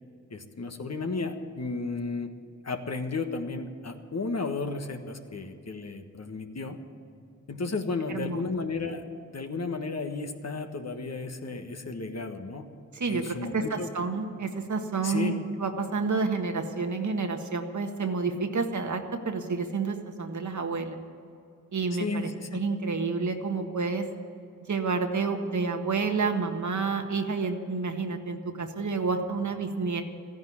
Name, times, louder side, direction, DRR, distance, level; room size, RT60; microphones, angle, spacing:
voice 1, 0.3-2.3 2.6-6.8 7.5-9.0 9.3-12.7 13.1-13.9 15.0-15.4 21.9-22.6, left 3 dB, 50° left, 5 dB, 1.5 m, -33 dB
voice 2, 8.1-8.4 12.9-15.3 15.6-21.0 21.7-24.1 24.7-30.0, right 4 dB, 60° right, 5 dB, 1.6 m, -29 dB
14.0 x 10.5 x 8.7 m, 2.6 s
cardioid pair, 50°, 33 cm